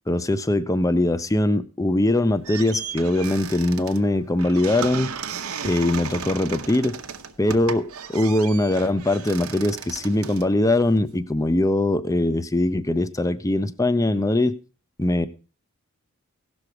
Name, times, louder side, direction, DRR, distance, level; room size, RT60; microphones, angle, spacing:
voice 1, 0.1-5.1 5.6-7.0 7.4-14.6 15.0-15.3, left 1 dB, 15° left, 0.5 m, -21 dB
sound 1, 2.1-11.2, right 6 dB, 85° right, 0.9 m, -35 dB
16.5 x 6.2 x 4.9 m
head